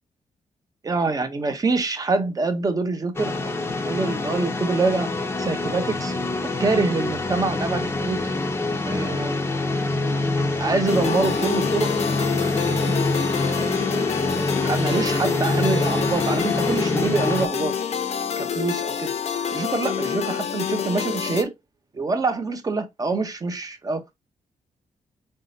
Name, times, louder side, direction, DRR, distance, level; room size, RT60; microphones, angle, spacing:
voice 1, 0.8-3.5 3.9-5.1 5.4-6.1 6.6-8.2 8.8-9.4 10.6-11.9 12.6-13.0 13.4-13.9 14.6-17.7 18.4-19.1 19.5-21.5 21.9-24.1, right 3 dB, 25° right, 0.8 m, -25 dB
sound 1, 3.1-17.5, left 2 dB, 15° left, 0.7 m, -25 dB
sound 2, 10.9-21.4, left 7 dB, 55° left, 0.8 m, -27 dB
3.9 x 3.7 x 2.6 m
cardioid pair, 125°, 13 cm